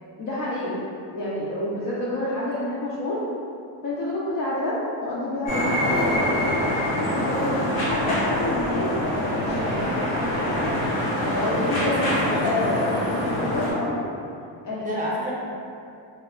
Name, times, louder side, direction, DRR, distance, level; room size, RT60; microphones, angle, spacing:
voice 1, 0.2-0.8 1.1-3.2 3.8-6.5 7.2-8.9 9.3-10.5 11.4-14.0 14.6-15.0, left 1 dB, 45° left, -8 dB, 0.4 m, -28 dB
sound 1, 5.5-13.7, left 1 dB, 80° left, 0.9 m, -25 dB
voice 2, 11.2-11.6 12.0-12.9 14.8-15.3, equal, 15° right, -6 dB, 0.6 m, -31 dB
3.0 x 2.0 x 2.3 m, 2.5 s
cardioid pair, 90°, 49 cm